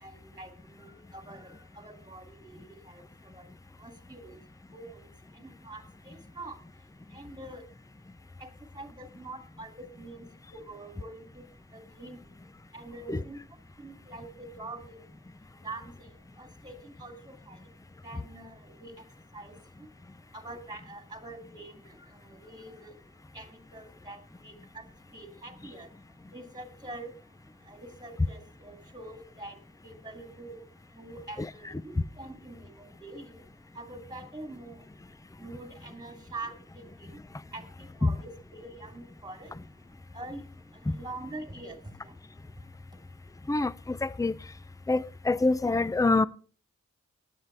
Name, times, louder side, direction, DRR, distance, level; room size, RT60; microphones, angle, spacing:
voice 1, 0.0-3.0 3.3-3.5 3.8-4.4 4.7-5.1 5.4-6.6 7.1-7.6 8.4-8.5 8.8-10.2 10.5-11.4 11.7-12.2 12.7-13.4 13.8-15.0 15.6-16.1 16.4-17.6 18.0-18.9 19.3-19.5 20.3-21.9 22.2-22.9 23.3-24.8 25.1-25.9 26.3-27.1 27.7-29.6 29.8-30.6 30.9-33.4 33.8-34.8 35.4-36.9 37.5-37.6 38.0-39.5 40.1-40.4 40.9-42.1, right 2 dB, 15° right, 2.7 m, -44 dB
voice 2, 31.4-31.8 38.0-38.1 43.5-44.3 44.9-46.3, left 3 dB, 10° left, 0.5 m, -26 dB
20.0 x 9.0 x 3.4 m
wide cardioid pair, 60°, 29 cm